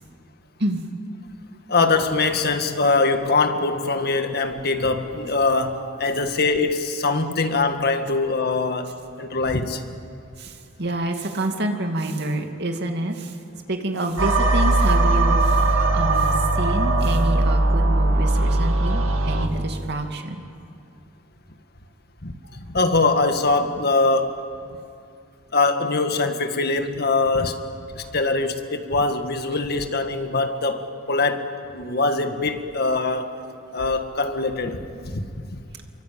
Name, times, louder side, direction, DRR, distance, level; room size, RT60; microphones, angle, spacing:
voice 1, 1.7-9.8 22.2-24.4 25.5-27.6 27.9-33.3 33.7-35.2 35.5-35.6, left 3 dB, 50° left, 7 dB, 1.8 m, -23 dB
voice 2, 10.4-13.4 13.7-20.4 28.0-28.1, right 1 dB, 55° right, 4 dB, 2.5 m, -28 dB
sound 1, 14.2-19.5, right 2 dB, 85° right, 2.2 m, -19 dB
27.5 x 24.0 x 8.8 m, 2.4 s
head